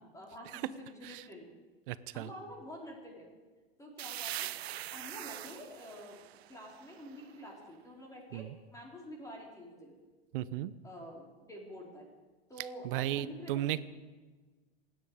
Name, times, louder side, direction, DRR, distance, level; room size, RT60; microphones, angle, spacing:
voice 1, 0.0-1.5 2.1-3.3 3.8-6.2 6.5-9.9 10.8-12.1 12.5-13.8, equal, 10° left, -2 dB, 4.5 m, -48 dB
voice 2, 1.9-2.3 8.3-8.6 10.3-10.7 12.8-13.8, right 13 dB, 60° right, 16 dB, 0.9 m, -35 dB
sound 1, 4.0-7.6, right 13 dB, 85° right, 0.5 m, -43 dB
27.5 x 9.9 x 5.1 m, 1.3 s
hypercardioid pair, 115°, 30 cm